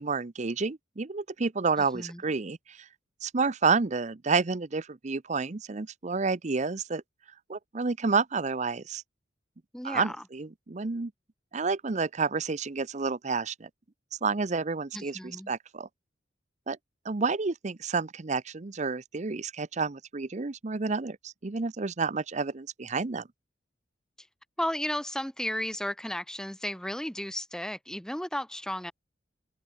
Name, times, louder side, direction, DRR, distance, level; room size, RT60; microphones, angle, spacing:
voice 1, 0.0-2.9 3.2-7.0 7.5-9.0 9.8-11.1 11.5-13.7 14.2-15.2 15.5-15.9 16.7-16.8 17.0-23.3, right 4 dB, 40° right, 0.7 m, -30 dB
voice 2, 1.8-2.2 9.7-10.2 14.9-15.5 24.2-24.3 24.6-28.9, left 1 dB, 5° left, 0.7 m, -34 dB
open air
head